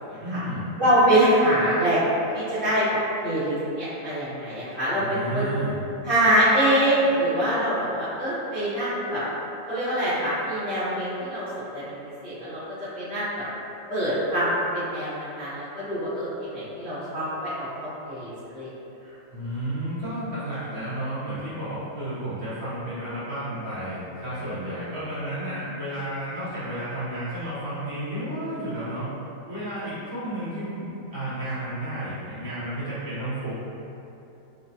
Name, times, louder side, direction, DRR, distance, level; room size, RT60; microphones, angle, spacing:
voice 1, 0.2-0.7 4.9-5.8 19.3-29.1 29.5-33.5, right 1 dB, 55° right, -15 dB, 2.0 m, -32 dB
voice 2, 0.8-2.0 2.3-2.9 3.2-5.5 6.0-9.2 9.7-12.0 12.2-13.4 13.9-18.7, right 1 dB, 40° left, -14 dB, 0.8 m, -24 dB
4.7 x 2.1 x 2.7 m, 2.9 s
omnidirectional pair, 2.1 m